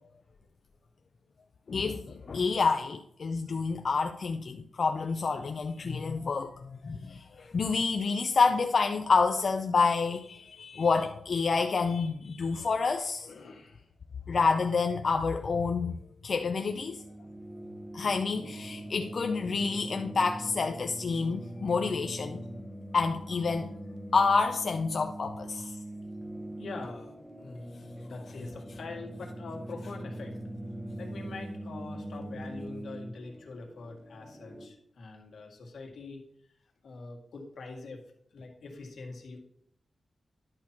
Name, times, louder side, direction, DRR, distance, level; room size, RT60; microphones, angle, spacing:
voice 1, 1.7-13.3 14.3-15.9 16.2-17.0 17.9-22.4 22.9-23.7 24.1-25.7, left 4 dB, 50° left, 5 dB, 0.5 m, -28 dB
voice 2, 13.2-13.9 26.6-30.3 31.0-36.2 36.8-38.0 38.3-39.4, left 3 dB, 80° left, 1 dB, 1.9 m, -44 dB
sound 1, 16.6-34.7, right 1 dB, 5° right, 0.8 m, -42 dB
11.0 x 4.4 x 5.9 m, 0.69 s
wide cardioid pair, 155°, 0 cm